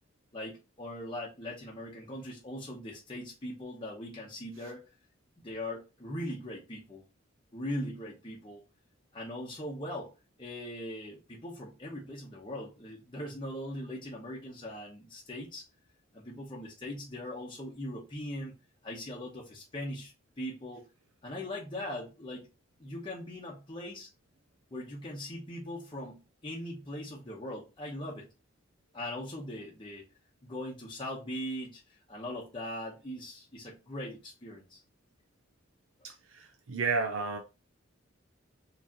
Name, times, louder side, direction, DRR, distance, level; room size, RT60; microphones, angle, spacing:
voice 1, 0.3-4.8 5.4-7.0 7.5-8.6 9.1-10.1 10.4-15.7 16.1-18.6 18.8-20.9 21.2-22.5 22.8-24.1 24.7-28.3 28.9-30.1 30.4-34.8, left 1 dB, 25° left, 0.9 m, -40 dB
voice 2, 36.0-37.4, right 4 dB, 85° right, 0.6 m, -32 dB
4.8 x 3.1 x 2.8 m
head